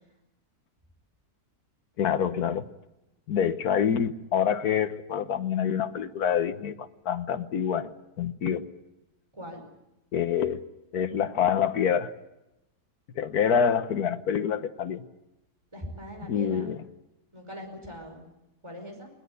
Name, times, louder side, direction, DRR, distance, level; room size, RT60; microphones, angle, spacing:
voice 1, 2.0-2.7 3.3-8.6 10.1-10.6 10.9-12.1 13.1-15.0 16.3-16.8, left 8 dB, 75° left, 10 dB, 1.6 m, -26 dB
voice 2, 15.7-16.7 17.3-18.2 18.6-19.1, equal, 15° right, 3 dB, 5.1 m, -41 dB
21.5 x 19.5 x 8.1 m, 0.92 s
omnidirectional pair, 1.6 m